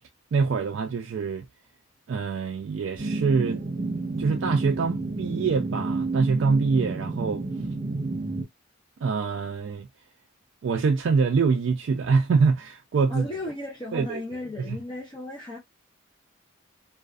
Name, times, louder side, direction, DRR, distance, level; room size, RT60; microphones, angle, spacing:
voice 1, 0.3-1.5 2.1-3.7 4.2-7.4 9.0-9.9 10.6-13.3 13.9-14.2 14.6-14.8, right 5 dB, 65° right, 0.3 m, -24 dB
sound 1, 3.0-8.4, right 3 dB, 40° right, 0.8 m, -30 dB
voice 2, 13.1-15.6, left 2 dB, 20° left, 0.7 m, -35 dB
2.4 x 2.4 x 2.3 m
head